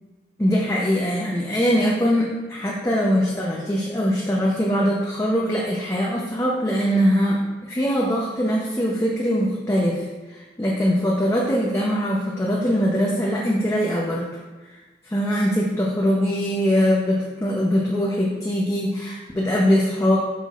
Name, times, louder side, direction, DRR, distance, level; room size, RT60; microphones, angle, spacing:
voice 1, 0.4-14.4 14.7-14.8 15.0-20.2, equal, 15° left, -4 dB, 0.7 m, -22 dB
8.1 x 5.9 x 2.4 m, 1.2 s
head